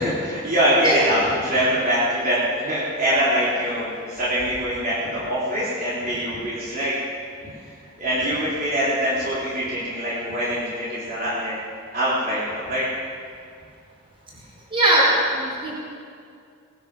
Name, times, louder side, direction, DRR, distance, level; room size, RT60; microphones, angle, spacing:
voice 1, 0.0-6.9 7.4-7.5 8.0-11.6 11.9-12.8, equal, 45° right, -10 dB, 3.6 m, -23 dB
voice 2, 14.7-15.1 15.3-15.7, right 1 dB, 25° right, -4 dB, 4.8 m, -19 dB
19.5 x 11.5 x 6.2 m, 2.3 s
head